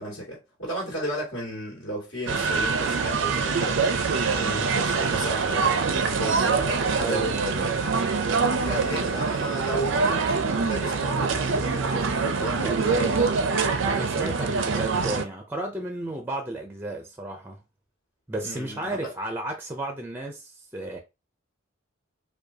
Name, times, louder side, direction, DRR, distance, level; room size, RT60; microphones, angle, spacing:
voice 1, 0.0-3.8 4.3-7.4 8.6-13.3 18.4-19.1, right 1 dB, 65° left, 2.1 m, -34 dB
sound 1, 2.3-15.2, right 4 dB, 60° right, 0.5 m, -24 dB
voice 2, 4.4-4.7 7.0-7.7 13.9-17.6 18.3-21.0, right 1 dB, 10° right, 0.5 m, -33 dB
4.9 x 2.3 x 2.8 m
head